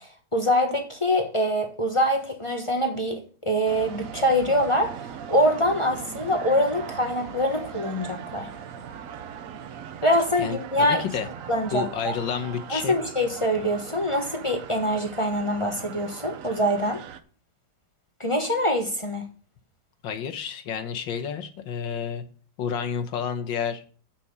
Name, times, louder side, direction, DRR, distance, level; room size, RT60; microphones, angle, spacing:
voice 1, 0.0-8.5 10.0-11.0 11.5-12.1 12.7-17.0 18.2-19.3, equal, 25° left, 0.7 m, -24 dB
sound 1, 3.7-17.2, right 8 dB, 60° right, 0.9 m, -39 dB
voice 2, 10.4-11.3 11.7-13.0 20.0-22.2 22.6-23.8, left 7 dB, 80° left, 1.7 m, -30 dB
7.2 x 6.1 x 6.7 m
omnidirectional pair, 2.1 m